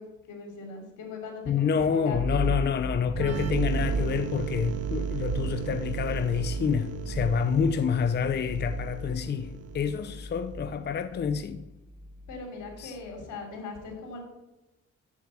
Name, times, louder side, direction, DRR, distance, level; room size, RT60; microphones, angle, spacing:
voice 1, 0.0-2.5 12.3-14.2, left 3 dB, 80° left, 3.4 m, -40 dB
voice 2, 1.5-11.6 12.8-13.0, left 7 dB, 35° left, 0.6 m, -28 dB
sound 1, 2.1-11.1, right 3 dB, 80° right, 2.4 m, -43 dB
sound 2, 2.2-13.1, left 1 dB, 5° left, 0.8 m, -37 dB
sound 3, 3.2-10.7, right 9 dB, 55° right, 0.8 m, -35 dB
7.4 x 7.3 x 7.4 m
cardioid pair, 90°, 30 cm